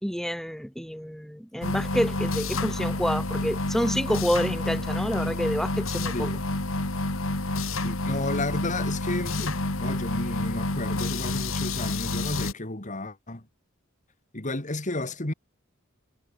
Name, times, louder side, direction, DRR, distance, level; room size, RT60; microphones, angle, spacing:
voice 1, 0.0-6.3, equal, ahead, 4.2 m, -28 dB
sound 1, 1.6-12.5, left 2 dB, 75° left, 3.1 m, -29 dB
voice 2, 7.8-13.4 14.3-15.3, left 2 dB, 35° left, 2.7 m, -32 dB
head